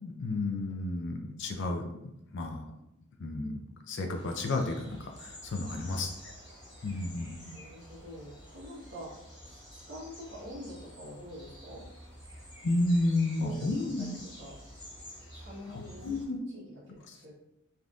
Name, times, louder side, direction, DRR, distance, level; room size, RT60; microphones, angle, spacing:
voice 1, 0.0-1.8 2.3-2.6 3.2-3.6 3.9-6.1 6.8-7.4 12.6-14.2 15.7-16.4 17.1-17.2, left 2 dB, 55° left, 3 dB, 0.4 m, -31 dB
sound 1, 4.1-16.2, equal, 20° left, 1.1 m, -49 dB
voice 2, 7.3-9.1 9.4-11.8 13.4-13.5 14.0-14.6 15.3-16.1 16.5-17.3, equal, 55° right, -6 dB, 1.2 m, -46 dB
3.4 x 2.6 x 2.4 m, 0.84 s
head